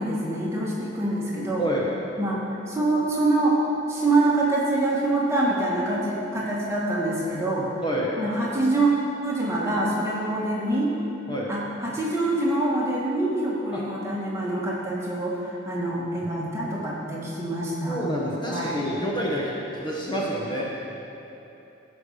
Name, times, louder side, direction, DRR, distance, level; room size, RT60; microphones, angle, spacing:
voice 1, 0.0-1.7 2.2-2.4 2.7-3.6 3.9-7.7 8.2-8.9 9.2-10.9 11.5-18.0 18.5-18.7, right 2 dB, 15° right, -5 dB, 1.7 m, -25 dB
voice 2, 7.8-8.1 11.3-11.5 13.7-13.8 17.8-20.6, equal, 25° left, -4 dB, 1.2 m, -28 dB
15.0 x 5.4 x 6.6 m, 3.0 s
head